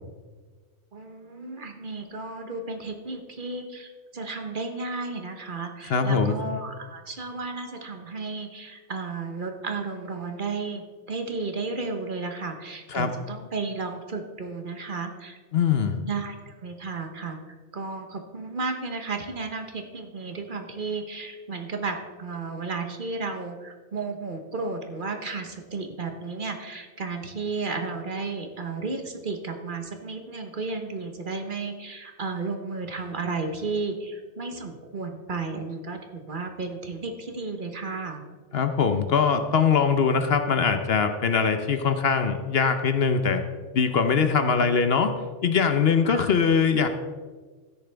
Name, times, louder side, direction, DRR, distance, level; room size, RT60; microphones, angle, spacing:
voice 1, 0.9-10.8 11.1-17.4 17.7-38.2 46.1-46.3, right 4 dB, 45° right, 5 dB, 1.1 m, -33 dB
voice 2, 5.9-6.4 12.9-13.1 15.5-16.0 38.5-43.4 43.7-45.1 45.4-46.9, left 6 dB, 60° left, 8 dB, 0.9 m, -22 dB
13.5 x 9.7 x 3.4 m, 1.4 s
omnidirectional pair, 1.2 m